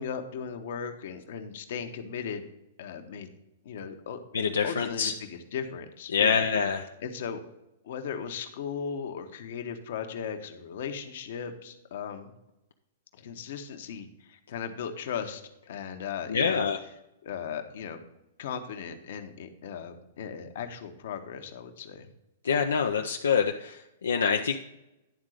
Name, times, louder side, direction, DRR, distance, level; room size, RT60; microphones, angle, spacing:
voice 1, 0.0-2.4 2.8-3.3 3.6-4.2 4.6-6.5 7.0-7.4 7.8-12.3 13.1-15.4 15.7-16.6 17.2-18.0 18.4-22.1, left 7 dB, 65° left, 7 dB, 1.0 m, -37 dB
voice 2, 4.3-5.1 6.1-6.9 16.3-16.8 22.4-24.6, left 6 dB, 85° left, 4 dB, 0.5 m, -26 dB
10.5 x 3.7 x 6.4 m, 0.92 s
hypercardioid pair, 125°, 0 cm